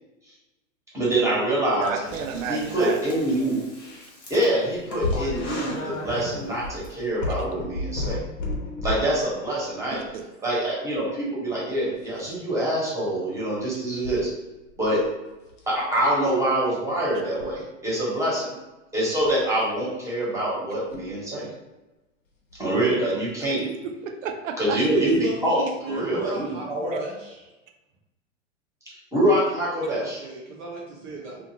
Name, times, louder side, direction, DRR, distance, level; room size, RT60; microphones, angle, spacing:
voice 1, 0.9-1.9 2.5-3.6 4.3-8.2 8.8-10.0 10.4-14.3 14.8-15.0 15.7-18.5 18.9-21.5 22.6-23.7 24.6-27.0 29.1-30.2, right 1 dB, 10° right, -7 dB, 1.0 m, -25 dB
voice 2, 1.8-3.0 10.1-10.2 24.0-24.8, right 6 dB, 75° right, 5 dB, 0.6 m, -31 dB
Breathing, 1.9-6.9, left 2 dB, 25° left, 1.0 m, -40 dB
sound 1, 5.0-9.1 9.9-10.1 11.9-12.3 14.0-14.2 14.7-15.1 15.5-15.8 17.2-17.5 19.2-19.4 20.9-21.0 22.5-22.6 23.3-23.4, left 2 dB, 70° left, 0.9 m, -31 dB
voice 3, 24.9-27.4 29.9-31.4, right 3 dB, 35° right, -3 dB, 0.7 m, -34 dB
2.6 x 2.4 x 2.8 m, 1.1 s
hypercardioid pair, 115°, 39 cm